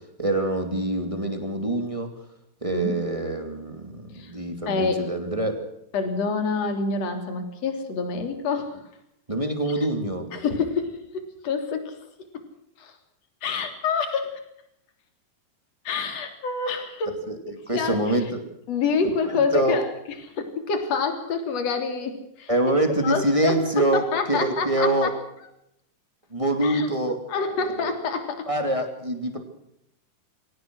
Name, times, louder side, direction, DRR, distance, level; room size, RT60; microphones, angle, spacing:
voice 1, 0.0-2.1 2.6-5.6 9.3-10.3 17.3-17.4 17.7-18.4 19.3-19.8 22.5-24.0 24.3-25.1 26.3-27.2 27.8-27.9 28.5-29.4, right 1 dB, 10° right, 6 dB, 1.5 m, -25 dB
voice 2, 4.7-5.1 5.9-8.8 9.7-9.9 10.3-12.0 12.8-13.0 13.4-14.4 15.8-17.2 17.7-18.2 18.7-19.9 20.2-22.5 23.0-25.1 26.6-26.9 27.3-28.5, left 4 dB, 35° left, 6 dB, 3.9 m, -27 dB
24.5 x 18.0 x 6.3 m, 0.76 s
omnidirectional pair, 5.4 m